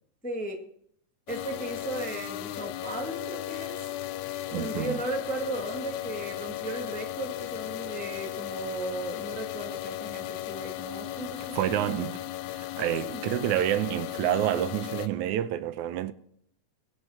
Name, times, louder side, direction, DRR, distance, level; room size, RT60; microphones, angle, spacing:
voice 1, 0.2-0.6 1.3-3.8 4.5-12.0 12.7-13.2, right 2 dB, 5° left, 0.9 m, -36 dB
sound 1, 1.3-15.1, left 14 dB, 80° left, 2.1 m, -36 dB
voice 2, 4.5-5.0 11.5-12.2 12.5-16.1, right 12 dB, 85° right, 2.1 m, -28 dB
22.0 x 8.2 x 4.2 m
omnidirectional pair, 3.4 m